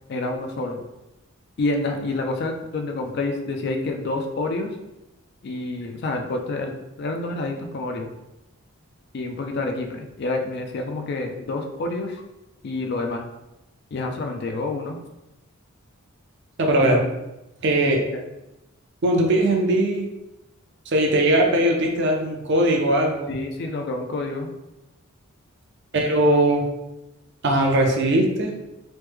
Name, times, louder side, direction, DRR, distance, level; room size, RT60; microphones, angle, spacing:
voice 1, 0.1-0.8 1.6-4.7 5.4-6.7 7.0-8.1 9.1-12.2 12.6-13.3 13.9-15.0 16.8-17.1 18.1-18.2 23.3-24.5, left 2 dB, 50° left, 4 dB, 0.3 m, -28 dB
voice 2, 16.6-17.0 17.6-18.0 19.0-20.1 20.9-23.3 25.9-26.7 27.4-28.5, right 1 dB, 50° right, 1 dB, 0.5 m, -20 dB
3.1 x 2.1 x 3.3 m, 0.95 s
head